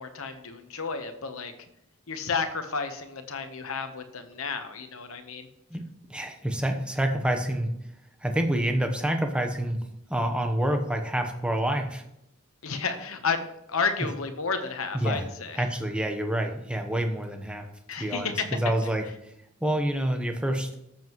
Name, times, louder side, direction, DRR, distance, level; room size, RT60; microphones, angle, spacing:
voice 1, 0.0-1.5 2.1-5.5 12.6-15.7 17.9-18.6, left 5 dB, 65° left, 7 dB, 1.0 m, -31 dB
voice 2, 6.1-7.7 8.2-9.8 10.1-12.0 14.9-15.3 15.6-17.7 18.0-19.3 19.6-20.7, right 1 dB, 5° right, 5 dB, 0.9 m, -27 dB
13.5 x 7.5 x 3.1 m, 0.80 s
head